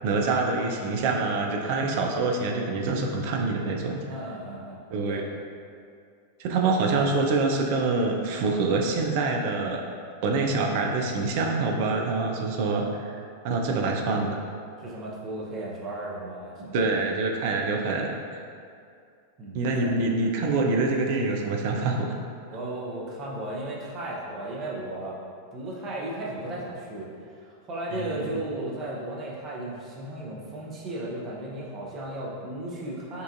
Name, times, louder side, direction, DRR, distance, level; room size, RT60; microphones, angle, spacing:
voice 1, 0.0-4.0 4.9-5.2 6.4-9.8 10.2-14.4 16.7-18.1 19.5-22.2 27.9-28.3, right 3 dB, 50° right, 1 dB, 0.5 m, -26 dB
voice 2, 4.1-4.8 5.1-5.2 13.7-13.8 14.8-16.9 19.4-19.9 22.5-25.2 25.5-27.1 27.7-33.2, right 1 dB, 30° right, -4 dB, 0.8 m, -35 dB
5.3 x 2.5 x 2.6 m, 2.3 s
figure-of-eight pair, 90°, 0 cm